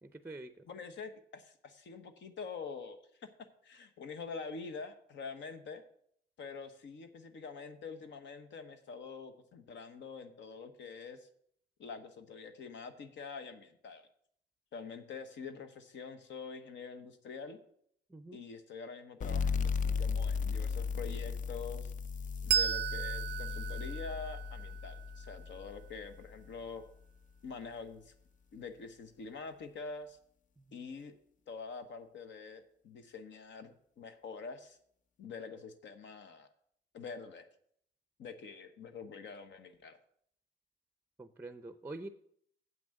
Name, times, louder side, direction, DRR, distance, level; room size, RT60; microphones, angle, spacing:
voice 1, 0.0-0.7 18.1-18.4 30.6-30.8 41.2-42.1, right 2 dB, 10° right, 11 dB, 0.5 m, -46 dB
voice 2, 0.7-3.3 3.6-5.8 6.4-11.3 11.8-14.1 14.7-17.6 18.3-21.9 22.4-26.8 27.4-28.1 28.5-30.2 30.7-31.1 31.5-34.8 35.2-36.5 36.9-37.5 38.2-40.0, left 5 dB, 65° left, 9 dB, 1.1 m, -46 dB
sound 1, 19.2-26.5, left 5 dB, 40° left, 0.5 m, -36 dB
Bell, 22.5-25.6, right 9 dB, 60° right, 0.4 m, -35 dB
7.7 x 6.0 x 7.7 m, 0.66 s
cardioid pair, 90°, 20 cm